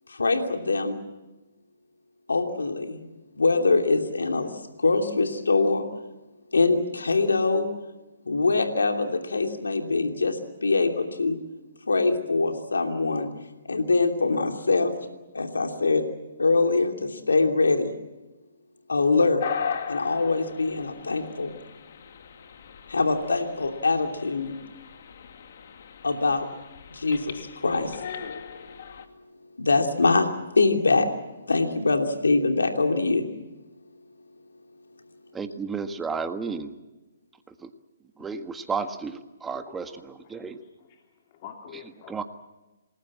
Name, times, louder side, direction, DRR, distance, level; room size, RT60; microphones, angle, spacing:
voice 1, 0.1-1.0 2.3-3.1 3.4-4.5 4.8-5.8 6.5-7.7 8.2-11.4 11.9-13.3 13.7-14.9 15.3-16.0 16.4-17.9 18.9-19.4 19.9-21.5 22.9-24.5 26.0-26.5 26.9-28.0 29.6-30.3 30.6-31.1 31.5-33.3, left 3 dB, 85° left, 4 dB, 2.9 m, -23 dB
sound 1, 19.4-29.1, left 7 dB, 55° left, 2.3 m, -38 dB
voice 2, 35.3-36.7 37.6-37.7 38.2-40.6 42.1-42.2, right 5 dB, 10° right, 8 dB, 1.6 m, -32 dB
voice 3, 39.5-41.0 41.3-42.2, left 8 dB, 35° left, 4 dB, 2.5 m, -47 dB
28.0 x 20.0 x 7.5 m, 1.1 s
hypercardioid pair, 145°, 0 cm